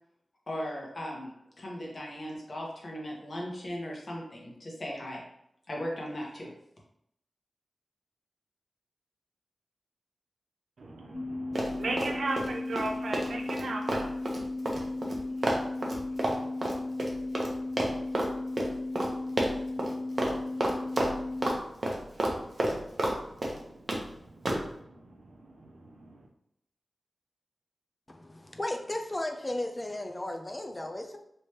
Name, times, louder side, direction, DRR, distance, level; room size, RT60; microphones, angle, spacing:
voice 1, 0.5-5.2 5.7-6.5, equal, 50° left, -2 dB, 1.2 m, -38 dB
voice 2, 10.8-14.5 15.3-15.7 16.0-17.1 19.2-26.3, right 2 dB, 80° right, 2 dB, 0.7 m, -40 dB
sound 1, 11.1-21.6, left 2 dB, 10° right, 0.7 m, -35 dB
Run, 11.5-12.5 12.7-17.5 17.8-18.3 18.6-18.7 18.9-19.1 19.4-19.9 20.2-20.3 20.6-21.6 21.8-23.2 23.4-24.0 24.4-24.6, right 1 dB, 50° right, 0.8 m, -29 dB
voice 3, 28.1-31.2, left 1 dB, 25° left, 4 dB, 0.5 m, -35 dB
3.3 x 3.0 x 3.0 m, 0.74 s
cardioid pair, 60°, 0 cm